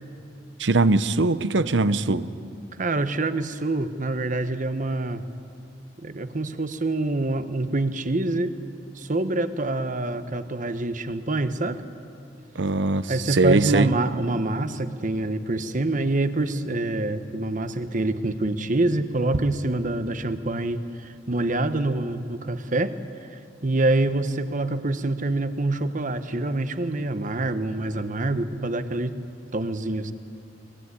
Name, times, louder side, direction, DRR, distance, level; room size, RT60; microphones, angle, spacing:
voice 1, 0.6-2.3 12.6-13.9, right 3 dB, 85° right, 15 dB, 0.8 m, -21 dB
voice 2, 2.8-5.2 6.0-8.5 8.9-11.8 13.1-22.9 23.2-29.1 29.5-30.1, right 2 dB, 45° right, 11 dB, 1.1 m, -26 dB
23.0 x 21.0 x 9.8 m, 2.5 s
head